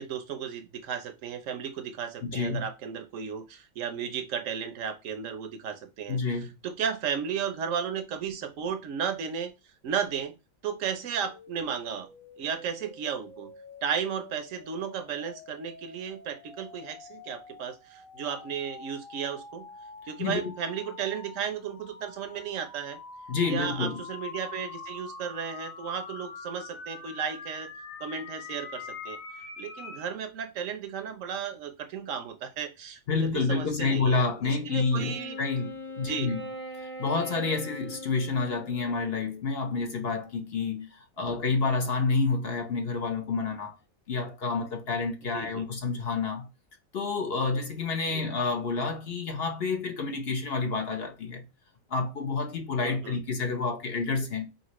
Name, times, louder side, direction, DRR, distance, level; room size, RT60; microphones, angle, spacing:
voice 1, 0.0-6.2 6.6-9.5 9.8-10.3 10.6-12.1 12.4-13.5 13.8-19.7 20.1-23.0 23.4-27.7 28.0-29.2 29.6-35.4 36.0-36.3 41.3-41.4 45.3-45.6 48.1-48.2 52.8-53.2, right 7 dB, 70° right, 1.0 m, -34 dB
voice 2, 2.2-2.7 6.1-6.5 20.2-20.4 23.3-24.0 33.1-36.4 36.8-43.8 44.1-46.5 46.9-51.4 51.9-54.5, left 4 dB, 55° left, 0.8 m, -29 dB
sound 1, 11.2-30.1, left 4 dB, 75° left, 1.5 m, -45 dB
Wind instrument woodwind instrument, 34.8-39.3, left 1 dB, 10° left, 0.5 m, -41 dB
4.9 x 2.8 x 3.0 m
omnidirectional pair, 1.4 m